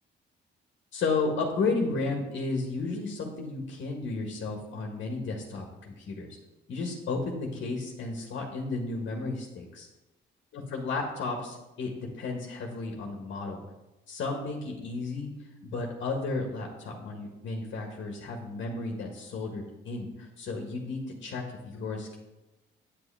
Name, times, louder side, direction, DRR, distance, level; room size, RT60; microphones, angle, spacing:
voice 1, 0.9-6.4 6.7-9.9 10.5-13.6 14.1-15.3 15.6-22.2, left 3 dB, 70° left, 1 dB, 1.5 m, -33 dB
9.3 x 7.5 x 3.4 m, 1.0 s
cardioid pair, 90°, 20 cm